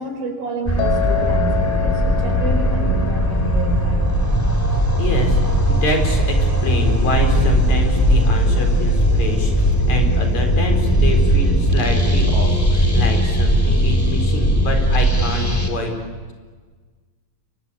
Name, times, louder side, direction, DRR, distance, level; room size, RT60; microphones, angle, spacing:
voice 1, 0.0-4.2 4.9-5.0, right 3 dB, 75° right, 4 dB, 6.7 m, -29 dB
sound 1, 0.7-15.7, equal, 5° left, 2.9 m, -18 dB
Piano, 0.8-6.9, left 11 dB, 80° left, 4.4 m, -29 dB
voice 2, 5.0-15.9, left 2 dB, 50° left, 4 dB, 5.7 m, -26 dB
29.0 x 24.5 x 8.4 m, 1.4 s
omnidirectional pair, 4.2 m